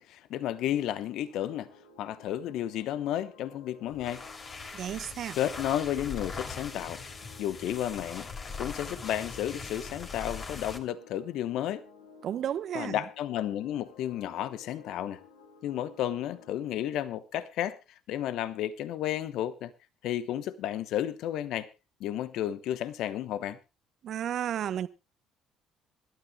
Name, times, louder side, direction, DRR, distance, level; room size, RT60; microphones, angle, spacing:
voice 1, 0.0-1.7 2.0-4.2 5.4-7.0 7.4-8.3 8.6-11.8 12.7-15.2 15.6-17.8 18.1-19.7 20.0-21.7 22.0-23.6, left 11 dB, 70° left, 0.9 m, -32 dB
sound 1, 1.2-16.6, left 5 dB, 85° left, 2.4 m, -55 dB
sound 2, 3.9-10.9, left 4 dB, 40° left, 2.8 m, -41 dB
voice 2, 4.7-5.4 12.2-13.0 24.0-24.9, right 10 dB, 60° right, 0.9 m, -33 dB
26.5 x 12.5 x 2.2 m
hypercardioid pair, 55°, 0 cm